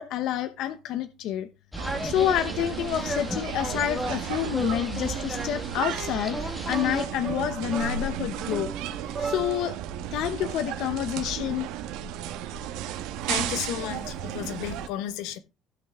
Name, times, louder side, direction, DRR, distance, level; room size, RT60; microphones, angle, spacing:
voice 1, 0.0-1.5 2.0-8.7 9.2-9.8 10.1-11.7, left 11 dB, 60° left, 0.9 m, -28 dB
sound 1, 1.7-7.1, equal, 5° left, 1.5 m, -35 dB
sound 2, 1.8-14.9, right 10 dB, 80° right, 1.3 m, -34 dB
sound 3, 6.7-9.8, right 5 dB, 25° right, 2.1 m, -36 dB
voice 2, 13.2-15.4, left 11 dB, 85° left, 1.3 m, -33 dB
15.5 x 5.7 x 3.6 m
cardioid pair, 160°, 0 cm